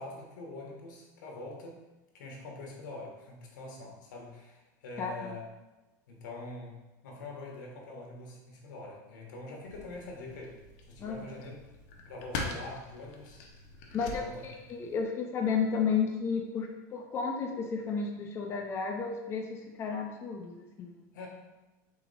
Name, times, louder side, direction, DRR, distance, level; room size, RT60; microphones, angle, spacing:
voice 1, 0.0-1.8 2.1-5.5 6.1-11.6 12.1-13.4 13.9-14.4 21.1-21.3, left 2 dB, 85° left, 0 dB, 1.1 m, -44 dB
voice 2, 5.0-5.3 11.0-11.3 13.9-21.0, left 5 dB, 25° left, 1 dB, 0.5 m, -33 dB
sound 1, 9.6-15.0, left 3 dB, 60° left, 0.7 m, -43 dB
4.2 x 2.8 x 4.0 m, 1.1 s
supercardioid pair, 140°, 10 cm